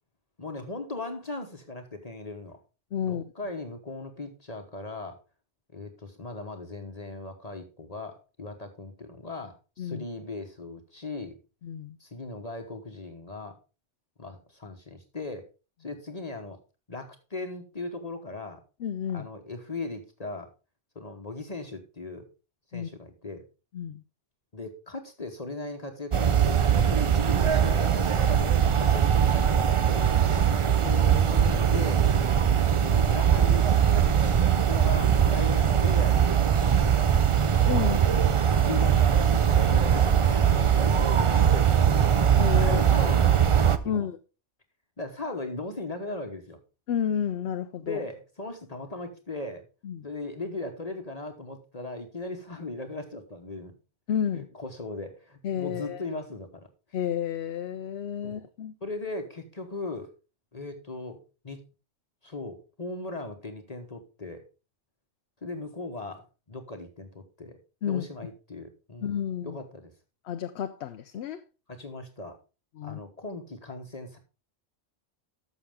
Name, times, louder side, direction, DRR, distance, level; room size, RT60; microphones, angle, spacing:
voice 1, 0.4-2.6 3.0-5.2 5.7-11.4 12.0-13.5 14.2-15.5 15.8-16.6 16.9-18.6 19.1-20.5 20.9-22.2 22.7-23.4 24.5-28.5 28.8-30.5 31.7-32.1 32.8-33.6 34.6-36.9 37.8-38.1 38.7-42.0 42.5-43.6 43.8-44.1 45.0-46.6 47.8-49.7 50.0-53.8 54.3-56.7 58.2-58.4 58.8-60.1 60.5-61.6 62.2-64.5 65.4-67.6 67.8-69.2 69.4-69.9 71.7-72.4 72.8-74.2, left 2 dB, 35° left, 1.2 m, -38 dB
voice 2, 2.9-3.2 9.8-10.1 11.6-12.0 18.8-19.3 22.7-22.9 23.7-24.0 30.8-31.8 37.7-38.0 42.3-42.8 43.8-44.2 46.9-48.0 49.8-50.1 54.1-54.5 55.4-56.0 56.9-58.7 67.8-68.1 69.0-69.6 70.3-71.4 72.8-73.0, left 8 dB, 70° left, 0.8 m, -31 dB
sound 1, 26.1-43.8, right 8 dB, 40° right, 0.4 m, -21 dB
13.0 x 6.4 x 3.5 m
omnidirectional pair, 1.2 m